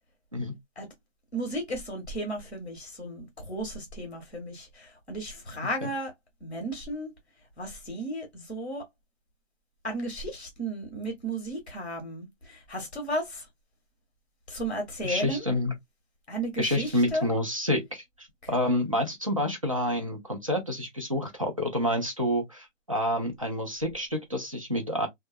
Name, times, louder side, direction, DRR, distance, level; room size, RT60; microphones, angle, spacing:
voice 1, 1.3-6.1 6.4-7.1 7.6-8.9 9.8-13.5 14.5-15.5 16.3-17.3 18.4-18.6, right 1 dB, 5° left, 0.8 m, -34 dB
voice 2, 15.0-15.7 16.6-18.0 18.5-25.1, left 1 dB, 25° right, 0.6 m, -28 dB
3.2 x 2.3 x 2.7 m
hypercardioid pair, 170°, 39 cm